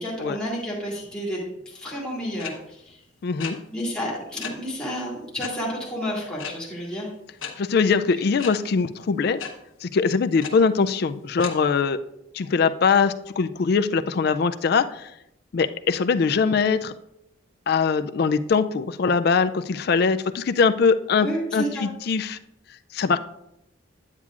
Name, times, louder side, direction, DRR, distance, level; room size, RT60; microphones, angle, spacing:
voice 1, 0.0-1.4 1.7-3.0 3.7-7.1 21.2-21.9, equal, 5° left, -5 dB, 2.1 m, -30 dB
sound 1, 2.4-2.5 3.4-3.5 4.4-4.5 5.4-5.5 6.4-6.5 7.4-7.5 8.4-8.5 9.4-9.5 10.4-10.5 11.4-11.5, left 8 dB, 85° left, 1.0 m, -33 dB
voice 2, 3.2-3.6 7.6-9.4 9.8-12.0 12.3-15.1 15.5-16.9 17.7-22.4 22.9-23.2, left 5 dB, 50° left, 11 dB, 0.3 m, -22 dB
9.7 x 8.3 x 2.4 m, 0.84 s
head